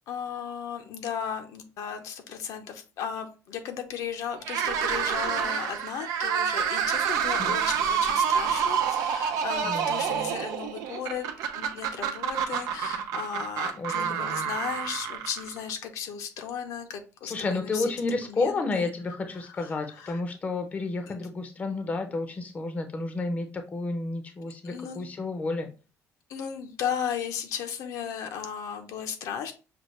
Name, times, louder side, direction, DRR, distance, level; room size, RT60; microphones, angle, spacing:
voice 1, 0.1-11.3 11.6-17.9 18.2-18.9 19.4-20.2 21.1-21.2 24.6-25.0 26.3-29.5, left 8 dB, 70° left, 5 dB, 0.8 m, -35 dB
sound 1, 4.4-15.7, right 7 dB, 85° right, 0.7 m, -28 dB
voice 2, 9.6-10.4 13.8-14.5 17.3-25.7, left 3 dB, 25° left, 6 dB, 0.6 m, -31 dB
6.2 x 2.4 x 3.1 m, 0.33 s
cardioid pair, 150°, 6 cm